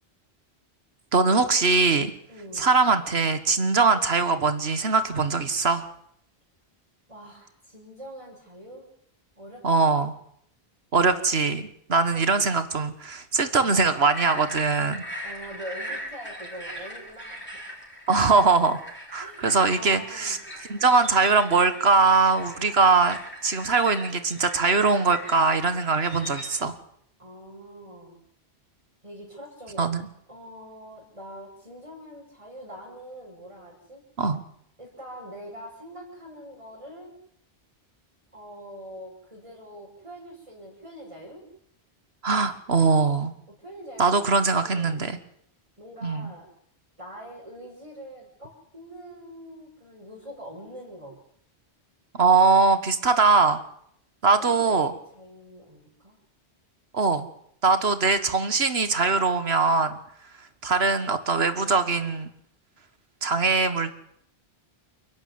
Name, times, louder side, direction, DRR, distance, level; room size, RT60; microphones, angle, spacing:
voice 1, 1.1-2.1 2.6-5.9 9.6-10.1 10.9-15.0 18.1-18.8 19.1-20.4 20.7-23.2 23.4-26.8 29.8-30.1 34.2-34.4 42.2-43.3 44.0-45.2 46.0-46.3 52.1-53.6 54.2-54.9 56.9-57.3 57.6-60.0 60.6-62.3 63.2-63.9, right 4 dB, 75° right, 11 dB, 1.8 m, -21 dB
voice 2, 2.3-2.7 7.1-8.9 9.4-10.1 12.1-12.2 13.6-13.8 15.2-17.6 19.2-20.4 27.2-28.2 29.0-29.9 30.3-34.0 34.8-37.1 38.3-41.4 43.5-44.3 44.6-45.0 45.8-46.5 47.0-51.2 54.4-56.2, equal, 30° right, -4 dB, 6.3 m, -43 dB
sound 1, 14.1-26.5, equal, 10° left, 6.4 m, -40 dB
29.0 x 12.0 x 9.6 m, 0.71 s
omnidirectional pair, 1.1 m